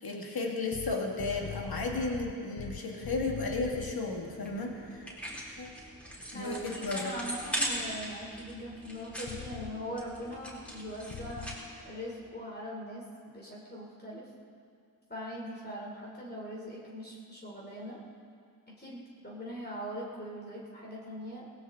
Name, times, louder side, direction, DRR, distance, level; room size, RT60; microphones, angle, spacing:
voice 1, 0.0-5.1 5.4-5.7 6.3-7.1, left 3 dB, 70° left, 0 dB, 2.1 m, -34 dB
sound 1, 0.7-4.0 9.3-9.7 11.1-11.6, left 9 dB, 50° left, 0.6 m, -42 dB
sound 2, 3.7-11.9, equal, 5° left, 4.4 m, -40 dB
voice 2, 6.3-11.5 11.8-14.3 15.1-18.0 18.7-21.5, equal, 25° left, -4 dB, 3.2 m, -41 dB
19.5 x 17.0 x 3.8 m, 2.4 s
wide cardioid pair, 65°, 37 cm